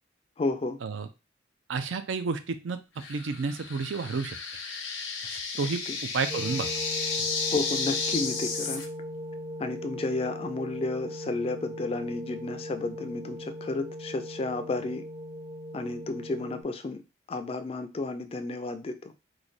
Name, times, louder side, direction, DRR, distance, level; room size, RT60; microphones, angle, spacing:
voice 1, 0.4-0.8 5.9-6.0 7.5-8.8 9.6-15.0 15.7-17.0 17.3-19.1, left 3 dB, 30° left, 8 dB, 0.3 m, -32 dB
voice 2, 1.7-2.8 3.1-4.4 5.3-6.7, right 4 dB, 90° right, 10 dB, 0.5 m, -31 dB
sound 1, 3.0-8.9, left 5 dB, 85° left, 0.8 m, -33 dB
sound 2, 6.3-16.6, equal, 35° right, 0.5 m, -39 dB
3.2 x 2.2 x 3.9 m, 0.28 s
head